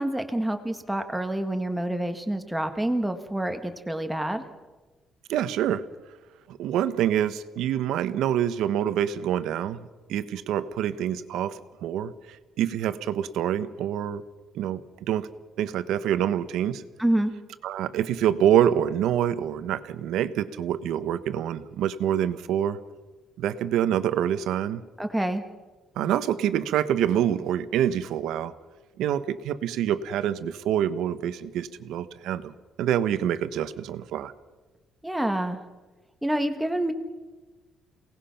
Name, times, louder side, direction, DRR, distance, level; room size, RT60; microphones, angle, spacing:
voice 1, 0.0-4.4 17.0-17.3 25.0-25.4 35.0-35.6 36.2-36.9, right 1 dB, 5° right, 6 dB, 1.4 m, -27 dB
voice 2, 5.3-5.8 6.5-12.1 12.6-14.2 14.5-14.8 15.1-15.3 15.6-16.8 17.6-22.8 23.4-24.8 26.0-28.5 29.0-32.5 32.8-34.3, right 10 dB, 90° right, 12 dB, 1.1 m, -26 dB
28.5 x 18.5 x 5.8 m, 1.2 s
cardioid pair, 180°, 0 cm